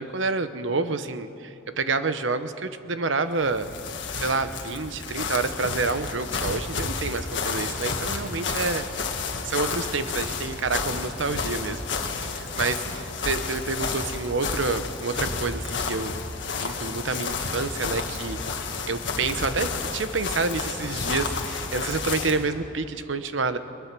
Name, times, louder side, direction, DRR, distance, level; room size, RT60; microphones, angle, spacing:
voice 1, 0.0-3.7 4.2-8.9 9.4-11.8 12.3-16.2 16.6-23.6, right 3 dB, 65° right, 11 dB, 0.9 m, -28 dB
sound 1, 3.4-22.5, left 4 dB, 65° left, 1.7 m, -31 dB
22.0 x 20.5 x 6.1 m, 2.8 s
head